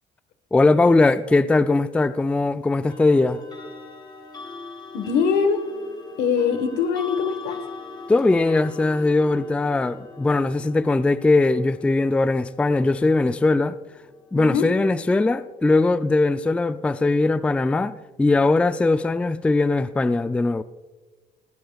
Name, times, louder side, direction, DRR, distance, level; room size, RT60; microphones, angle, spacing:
voice 1, 0.5-3.4 8.1-13.8 14.3-20.6, left 3 dB, 5° left, 0.3 m, -20 dB
sound 1, 1.0-1.2 2.9-15.7, left 3 dB, 25° left, 2.6 m, -41 dB
voice 2, 4.9-5.6 6.2-7.6 14.3-14.7, left 6 dB, 80° left, 1.4 m, -22 dB
19.5 x 15.0 x 2.4 m
cardioid pair, 110°, 17 cm